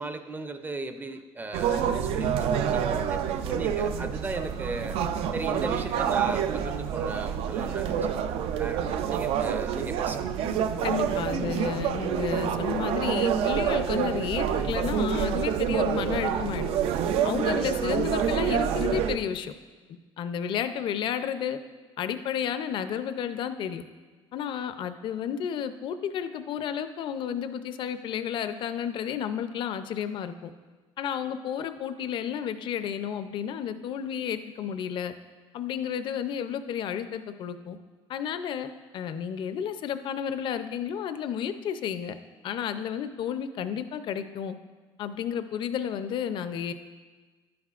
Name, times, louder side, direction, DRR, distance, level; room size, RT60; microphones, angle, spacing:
voice 1, 0.0-5.0 5.3-8.1 8.6-10.2, right 3 dB, 20° right, 8 dB, 0.5 m, -36 dB
sound 1, 1.5-19.2, right 8 dB, 75° right, 0.5 m, -27 dB
voice 2, 10.8-16.7 17.2-19.5 20.2-21.6 22.0-23.8 24.3-30.5 31.0-35.1 35.5-37.8 38.1-42.1 42.4-44.6 45.0-46.7, left 8 dB, 55° left, 10 dB, 0.5 m, -32 dB
11.5 x 9.4 x 2.4 m, 1.3 s
cardioid pair, 150°, 10 cm